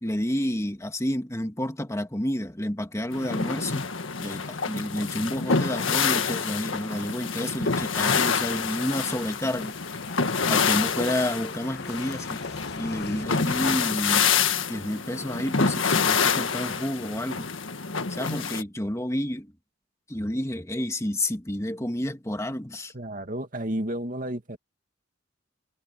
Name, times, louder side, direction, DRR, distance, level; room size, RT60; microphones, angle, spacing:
voice 1, 0.0-3.9 4.2-9.7 10.5-12.4 12.8-14.3 14.7-17.5 18.1-19.5 20.1-22.9, left 1 dB, 15° left, 1.8 m, -30 dB
sound 1, 3.1-18.6, left 5 dB, 85° left, 1.6 m, -27 dB
sound 2, 5.6-14.5, left 4 dB, 55° left, 1.4 m, -45 dB
voice 2, 22.9-24.6, right 1 dB, 45° right, 2.4 m, -31 dB
head